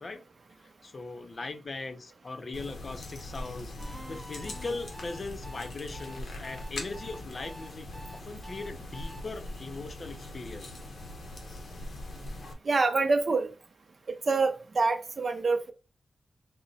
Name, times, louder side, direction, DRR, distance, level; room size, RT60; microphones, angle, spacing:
voice 1, 0.8-7.9 8.1-10.7, left 3 dB, 40° left, 0.5 m, -39 dB
sound 1, 2.5-12.5, left 1 dB, 70° left, 0.8 m, -42 dB
sound 2, 3.8-9.2, equal, 10° right, 0.7 m, -47 dB
voice 2, 12.6-13.5 14.1-15.7, right 3 dB, 45° right, 0.6 m, -26 dB
3.8 x 2.1 x 3.9 m
wide cardioid pair, 125°, 0 cm